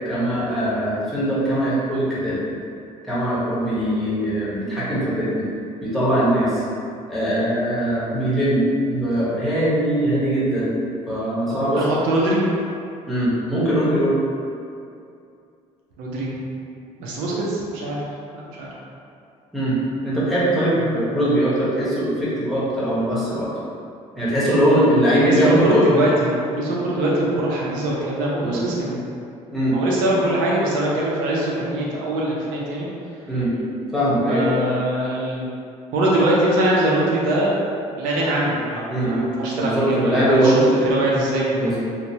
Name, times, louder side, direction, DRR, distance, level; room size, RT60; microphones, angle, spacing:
voice 1, 0.0-2.4 3.1-5.5 5.8-6.6 7.1-10.7 11.1-11.8 13.1-14.2 19.5-19.8 20.0-23.5 24.2-25.8 28.4-28.6 29.5-29.8 33.3-33.5 33.9-34.5 38.9-39.2 39.6-40.8 41.6-41.8, right 1 dB, ahead, -11 dB, 1.0 m, -21 dB
voice 2, 11.5-12.5 16.0-16.4 17.0-18.0 18.3-18.7 25.1-29.0 29.7-32.9 34.3-35.5 35.9-37.6 38.0-41.8, right 1 dB, 85° right, -4 dB, 0.6 m, -22 dB
2.8 x 2.1 x 2.7 m, 2.5 s
cardioid pair, 105°, 14 cm